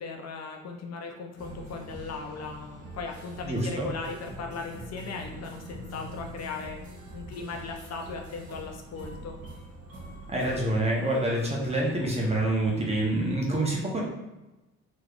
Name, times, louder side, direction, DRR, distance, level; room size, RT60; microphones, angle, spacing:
voice 1, 0.0-6.8 7.1-9.4, left 4 dB, 60° left, 2 dB, 0.5 m, -38 dB
sound 1, 1.4-13.3, right 1 dB, 55° right, 1.2 m, -44 dB
voice 2, 3.5-3.9 10.3-14.0, right 1 dB, 20° right, -3 dB, 1.0 m, -27 dB
3.4 x 3.1 x 2.4 m, 1.0 s
cardioid pair, 90°, 30 cm